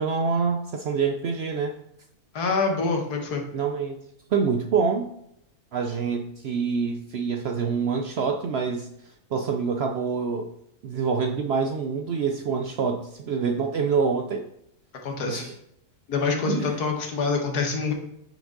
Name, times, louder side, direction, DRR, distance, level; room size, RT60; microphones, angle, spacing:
voice 1, 0.0-1.7 3.5-4.0 4.3-5.1 5.7-8.9 9.3-10.5 10.8-14.5 15.2-15.5 16.5-16.7, right 5 dB, 80° right, 4 dB, 0.5 m, -26 dB
voice 2, 2.3-3.4 15.0-15.4 16.1-17.9, left 4 dB, 80° left, 2 dB, 1.7 m, -26 dB
6.1 x 5.2 x 3.7 m, 0.77 s
omnidirectional pair, 1.6 m